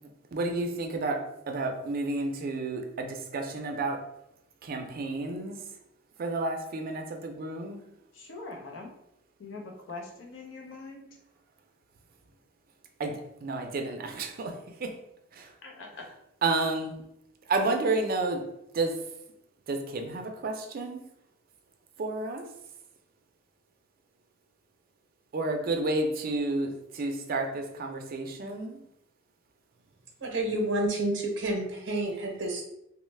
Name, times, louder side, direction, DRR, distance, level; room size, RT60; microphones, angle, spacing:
voice 1, 0.3-4.0 4.6-5.6 6.2-7.8 13.0-14.9 15.3-15.5 16.4-17.0 17.5-18.4 18.7-19.0 19.7-21.0 22.0-22.5 25.3-28.8, right 2 dB, 50° right, 4 dB, 0.4 m, -31 dB
voice 2, 8.1-8.9 9.4-11.1 15.6-16.0, left 3 dB, 70° left, 1 dB, 0.6 m, -42 dB
voice 3, 30.2-32.6, right 1 dB, 90° right, 0 dB, 0.6 m, -29 dB
3.0 x 2.0 x 3.2 m, 0.81 s
head